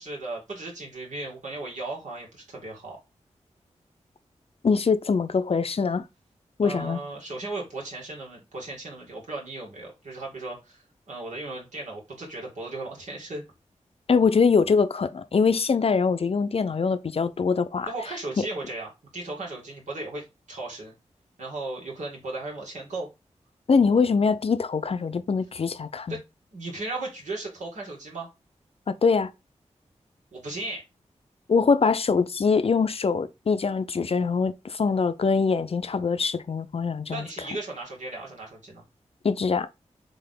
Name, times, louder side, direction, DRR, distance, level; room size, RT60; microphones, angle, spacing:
voice 1, 0.0-3.0 6.6-13.4 17.9-20.9 21.4-23.1 26.1-26.2 26.5-28.3 30.3-30.8 37.1-38.8, right 2 dB, 75° right, 2.2 m, -36 dB
voice 2, 4.6-6.0 6.6-7.0 14.1-17.9 18.4-18.5 23.7-26.2 28.9-29.3 31.5-37.3 39.2-39.7, left 5 dB, 50° left, 0.5 m, -23 dB
3.7 x 3.5 x 3.8 m
cardioid pair, 55°, 12 cm